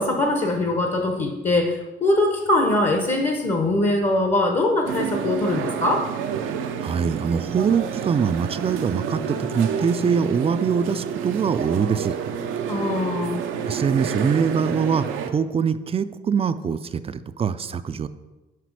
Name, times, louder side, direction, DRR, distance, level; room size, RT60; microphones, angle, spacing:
voice 1, 0.0-6.1 12.7-13.4, left 2 dB, 40° left, 3 dB, 0.9 m, -22 dB
sound 1, 4.9-15.3, right 7 dB, 90° right, 0.6 m, -29 dB
voice 2, 6.8-12.2 12.7-13.0 13.7-18.1, right 6 dB, 30° right, 13 dB, 0.3 m, -23 dB
6.0 x 4.9 x 4.7 m, 1.1 s
cardioid pair, 90°, 20 cm